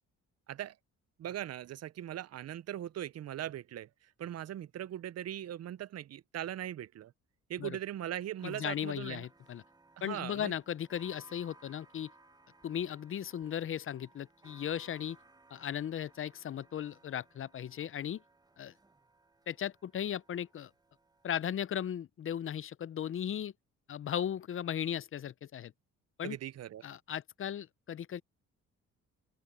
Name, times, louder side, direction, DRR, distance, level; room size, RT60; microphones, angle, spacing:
voice 1, 1.2-3.9 4.2-7.1 7.5-9.3 10.0-10.5 26.2-26.8, right 11 dB, 55° right, 0.6 m, -40 dB
voice 2, 8.4-9.6 10.0-12.1 12.6-15.2 15.5-18.2 18.6-18.7 19.5-20.7 21.2-23.5 23.9-25.7 26.2-26.4 26.8-28.2, left 9 dB, 45° left, 0.5 m, -37 dB
sound 1, 8.4-21.5, right 2 dB, 15° right, 1.0 m, -62 dB
open air
cardioid pair, 90°, 30 cm